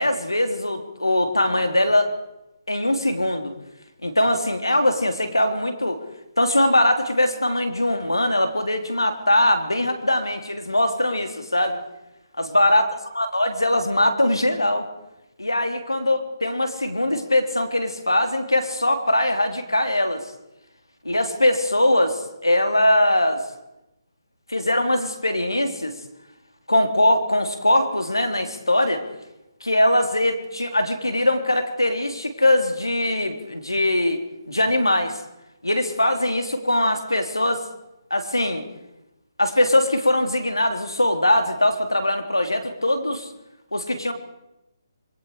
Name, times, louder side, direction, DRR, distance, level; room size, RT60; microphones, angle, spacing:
voice 1, 0.0-2.1 2.7-3.5 4.0-6.0 6.4-11.8 12.4-12.9 13.2-14.9 15.4-20.3 21.0-23.4 24.5-26.0 26.7-29.0 29.6-34.2 34.5-35.2 35.6-37.6 38.1-38.6 39.4-43.3 43.7-44.1, left 1 dB, 85° left, 6 dB, 3.5 m, -21 dB
26.5 x 23.0 x 5.0 m, 0.91 s
figure-of-eight pair, 140°, 2 cm